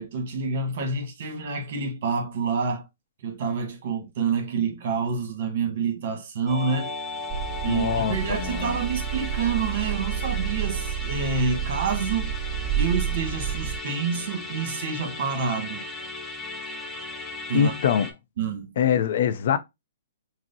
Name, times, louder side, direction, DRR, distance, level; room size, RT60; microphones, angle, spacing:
voice 1, 0.0-2.9 3.2-6.9 7.6-12.3 12.6-15.9 17.5-17.7 18.4-18.7, right 5 dB, 55° right, 1.1 m, -28 dB
Musical instrument, 6.5-18.1, left 2 dB, 5° left, 0.7 m, -36 dB
sound 1, 7.3-13.8, right 10 dB, 20° right, 2.1 m, -30 dB
voice 2, 7.7-8.8 17.5-18.1 18.8-19.6, left 8 dB, 60° left, 0.5 m, -23 dB
6.0 x 2.0 x 2.6 m
hypercardioid pair, 150°, 0 cm